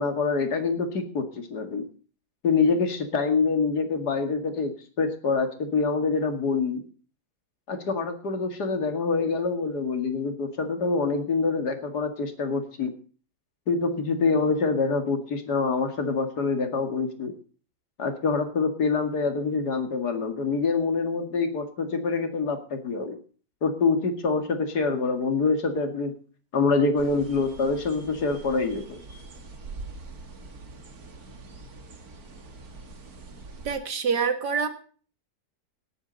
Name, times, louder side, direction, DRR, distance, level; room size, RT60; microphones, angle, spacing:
voice 1, 0.0-1.8 2.4-6.8 7.7-12.9 13.7-17.3 18.0-23.2 23.6-26.1 26.5-29.0, left 4 dB, 70° left, 6 dB, 2.6 m, -26 dB
sound 1, 27.0-33.8, right 3 dB, 60° right, 2.3 m, -44 dB
voice 2, 33.6-34.7, right 6 dB, 80° right, 8 dB, 2.2 m, -26 dB
18.0 x 10.0 x 4.0 m, 0.41 s
omnidirectional pair, 1.8 m